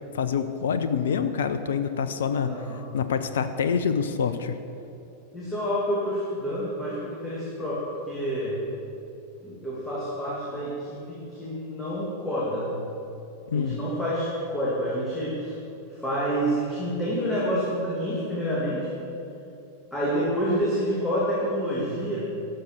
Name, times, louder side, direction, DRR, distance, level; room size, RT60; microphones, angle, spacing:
voice 1, 0.1-2.5 2.9-4.6 13.5-13.8, left 6 dB, 60° left, 11 dB, 0.5 m, -26 dB
voice 2, 2.4-2.9 5.3-8.6 9.4-12.7 13.5-15.5 15.9-18.9 19.9-22.2, equal, 10° left, -8 dB, 2.3 m, -28 dB
12.0 x 6.5 x 6.5 m, 2.8 s
figure-of-eight pair, 90°, 0 cm